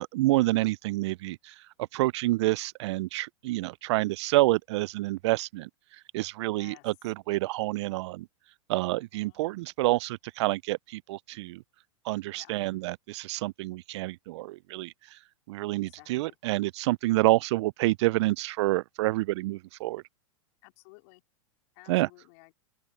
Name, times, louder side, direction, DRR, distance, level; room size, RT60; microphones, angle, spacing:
voice 1, 0.0-1.5 1.9-5.7 6.1-8.3 8.7-11.6 12.1-14.9 15.5-20.0 21.9-22.1, right 19 dB, 60° right, 0.4 m, -28 dB
voice 2, 6.5-6.9 8.9-9.4 12.3-12.5 15.7-16.4 20.6-21.2 21.7-22.6, left 28 dB, 55° left, 3.3 m, -55 dB
open air
hypercardioid pair, 110°, 17 cm